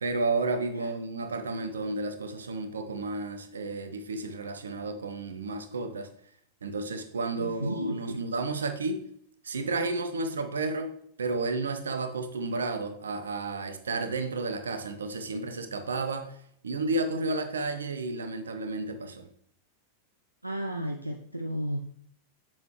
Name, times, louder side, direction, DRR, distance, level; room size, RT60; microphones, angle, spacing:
voice 1, 0.0-6.1 6.6-9.0 9.4-10.9 11.2-16.4 16.6-19.3, right 3 dB, 70° right, 8 dB, 0.8 m, -32 dB
voice 2, 7.4-8.2 20.4-21.9, equal, 85° right, 4 dB, 0.5 m, -33 dB
7.3 x 7.2 x 3.1 m, 0.65 s
figure-of-eight pair, 90°, 0 cm